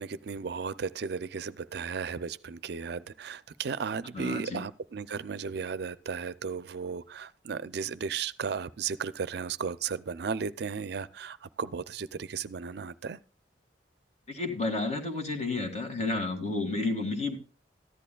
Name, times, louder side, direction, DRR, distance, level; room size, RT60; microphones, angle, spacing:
voice 1, 0.0-13.2, right 6 dB, 65° right, 0.5 m, -35 dB
voice 2, 4.1-4.6 14.3-17.4, left 3 dB, 40° left, 1.9 m, -31 dB
14.5 x 11.0 x 2.3 m
head